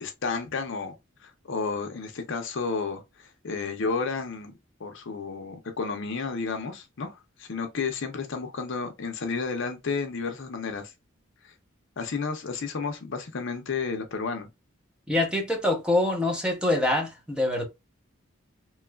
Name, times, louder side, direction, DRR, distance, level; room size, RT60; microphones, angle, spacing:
voice 1, 0.0-1.0 1.2-4.5 4.8-10.9 11.4-11.5 12.0-14.5, left 4 dB, 65° left, 0.6 m, -32 dB
voice 2, 15.1-17.6, left 1 dB, 5° right, 0.8 m, -25 dB
3.0 x 2.3 x 2.2 m
head